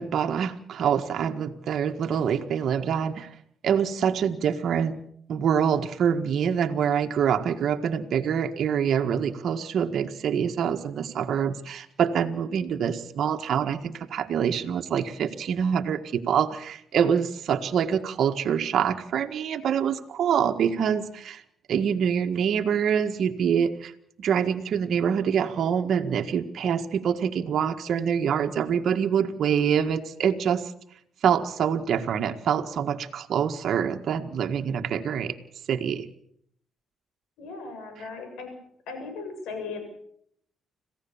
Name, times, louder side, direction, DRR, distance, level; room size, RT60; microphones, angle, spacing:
voice 1, 0.0-3.3 3.6-5.0 5.3-21.4 21.7-23.9 24.2-30.6 31.2-35.3 35.7-36.0, right 8 dB, 65° right, 5 dB, 1.7 m, -25 dB
voice 2, 37.4-38.5 38.9-39.8, left 4 dB, 85° left, 5 dB, 7.5 m, -37 dB
26.5 x 16.0 x 7.2 m, 0.69 s
cardioid pair, 90°, 0 cm